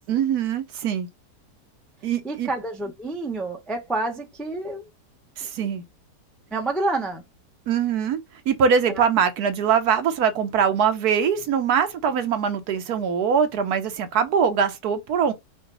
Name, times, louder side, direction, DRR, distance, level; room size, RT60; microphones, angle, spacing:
voice 1, 0.1-1.1 2.0-2.5 5.4-5.8 7.7-8.2 8.5-15.3, right 7 dB, 70° right, 1.2 m, -22 dB
voice 2, 2.2-4.9 6.5-7.2 8.9-9.0, right 2 dB, ahead, 0.3 m, -28 dB
5.0 x 2.4 x 3.8 m
omnidirectional pair, 1.8 m